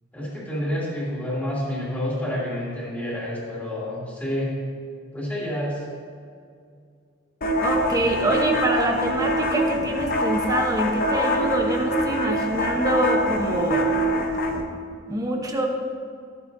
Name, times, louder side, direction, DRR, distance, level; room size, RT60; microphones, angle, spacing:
voice 1, 0.1-4.5 5.1-5.8, equal, 10° left, -7 dB, 2.6 m, -28 dB
sound 1, 7.4-14.6, equal, 50° left, 0.8 m, -24 dB
voice 2, 7.6-14.0 15.1-15.7, right 1 dB, 20° right, 2 dB, 0.9 m, -25 dB
13.0 x 9.1 x 2.7 m, 2.3 s
head